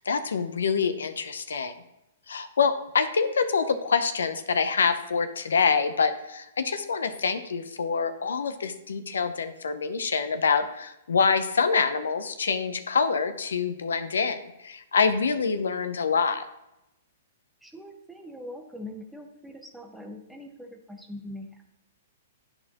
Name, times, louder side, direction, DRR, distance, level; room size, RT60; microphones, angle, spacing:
voice 1, 0.0-1.8 2.3-16.5, left 5 dB, 85° left, 10 dB, 0.6 m, -26 dB
voice 2, 17.6-21.5, left 1 dB, 5° right, 2 dB, 1.0 m, -42 dB
11.0 x 4.4 x 2.9 m, 0.89 s
hypercardioid pair, 135°, 0 cm